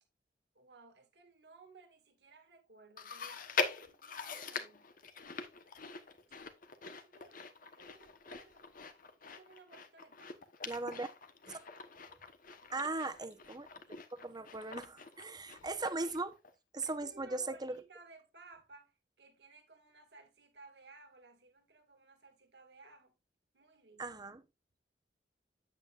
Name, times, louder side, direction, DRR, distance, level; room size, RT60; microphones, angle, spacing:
voice 1, 0.5-4.9 6.8-8.7 9.2-10.5 12.6-13.0 16.8-23.2 23.5-24.2, right 3 dB, 70° right, 2.4 m, -59 dB
Chewing mastication, 3.0-16.5 16.8-16.9 17.7-17.8, left 5 dB, 50° left, 1.2 m, -43 dB
voice 2, 10.7-11.1 11.5-11.6 12.7-13.7 14.1-16.3 16.7-17.8 24.0-24.4, right 3 dB, 25° right, 1.0 m, -38 dB
9.2 x 8.4 x 2.5 m
head